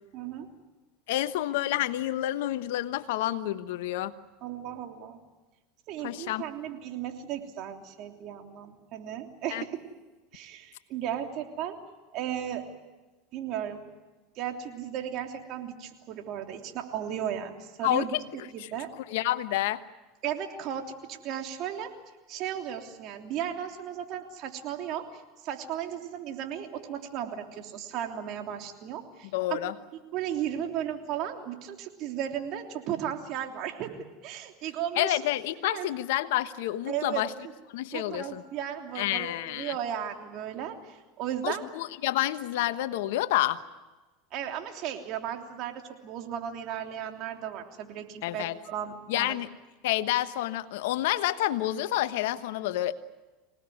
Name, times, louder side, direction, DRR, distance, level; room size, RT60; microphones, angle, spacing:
voice 1, 0.1-0.5 4.4-5.2 5.9-9.8 10.3-11.8 12.1-12.6 13.3-13.8 14.4-18.9 20.2-21.9 22.3-29.3 30.1-34.0 34.2-35.2 35.6-35.9 36.9-37.5 37.9-41.7 44.3-49.4, right 10 dB, 55° right, 4 dB, 3.2 m, -35 dB
voice 2, 1.1-4.1 6.0-6.4 9.5-9.6 17.8-18.2 18.6-18.7 19.1-19.8 29.3-29.7 35.0-37.3 37.7-38.4 38.9-39.7 41.4-43.6 48.2-48.6 49.1-49.5 49.8-52.9, left 14 dB, 75° left, 12 dB, 1.2 m, -29 dB
25.5 x 18.5 x 9.5 m, 1.2 s
hypercardioid pair, 95°, 0 cm